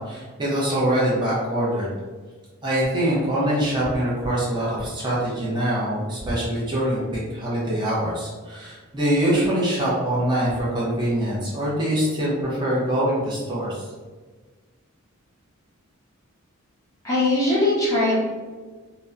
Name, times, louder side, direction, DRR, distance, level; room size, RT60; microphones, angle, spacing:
voice 1, 0.0-1.9 2.6-13.8, right 1 dB, 20° right, -7 dB, 0.6 m, -24 dB
voice 2, 17.0-18.1, left 2 dB, 15° left, -7 dB, 0.9 m, -20 dB
2.8 x 2.1 x 2.4 m, 1.4 s
head